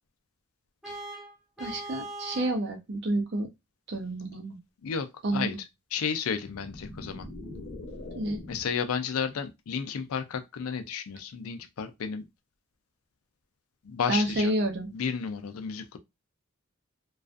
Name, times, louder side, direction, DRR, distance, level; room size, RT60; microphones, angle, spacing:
Vehicle horn car horn honking, 0.8-2.6, right 2 dB, ahead, 0.5 m, -40 dB
voice 1, 1.6-3.5 3.9-4.6 5.2-5.6 8.1-8.4 14.1-14.9, right 1 dB, 55° right, 0.6 m, -29 dB
voice 2, 4.8-5.5 5.9-7.3 8.5-12.2 13.8-14.5 14.9-16.0, left 6 dB, 90° left, 0.4 m, -32 dB
sound 1, 6.3-8.9, left 2 dB, 45° left, 0.7 m, -42 dB
2.4 x 2.3 x 2.4 m
head